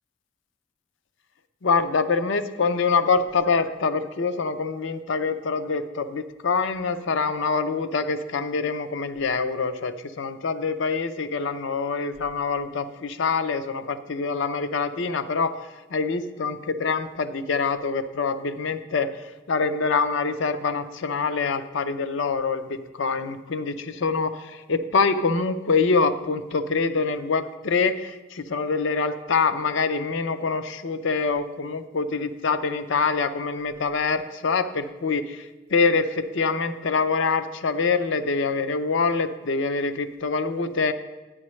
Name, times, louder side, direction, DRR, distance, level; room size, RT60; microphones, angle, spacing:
voice 1, 1.6-15.5 15.9-19.1 19.5-40.9, left 4 dB, 70° left, 10 dB, 0.5 m, -25 dB
9.8 x 9.5 x 3.1 m, 1.1 s
head